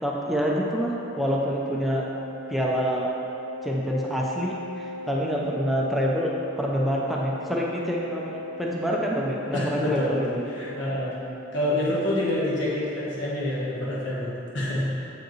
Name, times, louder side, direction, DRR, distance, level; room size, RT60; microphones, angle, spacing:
voice 1, 0.0-2.1 2.5-3.1 3.6-10.4, equal, ahead, -4 dB, 0.4 m, -27 dB
Organ, 1.1-11.8, left 1 dB, 50° right, 0.7 m, -38 dB
voice 2, 9.5-10.1 10.5-11.1 11.5-14.9, left 1 dB, 75° left, -7 dB, 1.2 m, -27 dB
7.6 x 4.9 x 3.1 m, 2.7 s
head